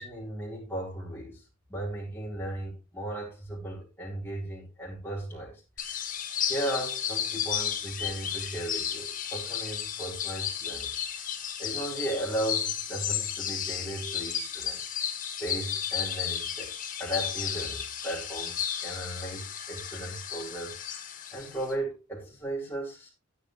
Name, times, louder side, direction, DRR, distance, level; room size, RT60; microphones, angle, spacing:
voice 1, 0.0-1.4 1.7-6.1 6.4-11.3 11.6-14.9 15.4-16.7 17.0-21.0 21.3-23.1, right 1 dB, 10° left, -7 dB, 4.6 m, -36 dB
sound 1, 5.8-21.7, left 8 dB, 40° left, 2.0 m, -33 dB
15.0 x 9.3 x 3.3 m, 0.27 s
head